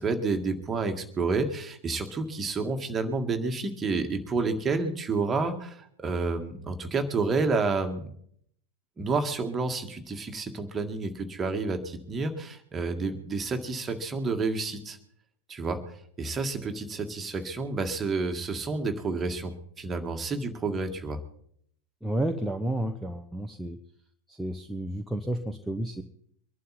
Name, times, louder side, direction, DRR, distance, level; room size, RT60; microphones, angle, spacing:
voice 1, 0.0-8.1 9.0-15.0 15.5-21.2, right 3 dB, 20° right, 6 dB, 1.9 m, -30 dB
voice 2, 22.0-23.8 24.3-26.0, right 1 dB, 5° right, 3 dB, 0.9 m, -31 dB
24.0 x 11.5 x 4.3 m, 0.66 s
figure-of-eight pair, 90°, 0 cm